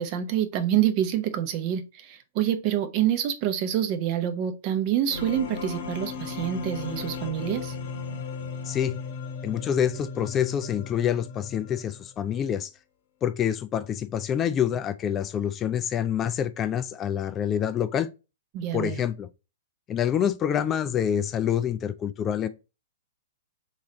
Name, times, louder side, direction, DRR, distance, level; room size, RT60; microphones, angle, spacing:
voice 1, 0.0-7.8 18.5-19.0, right 10 dB, 40° right, 0.7 m, -27 dB
sound 1, 5.1-12.1, left 4 dB, 55° left, 0.9 m, -36 dB
voice 2, 8.6-9.0 9.4-12.7 13.2-18.1 18.7-19.3 19.9-22.5, left 9 dB, 25° left, 0.3 m, -26 dB
3.7 x 3.1 x 4.0 m
figure-of-eight pair, 110°, 0 cm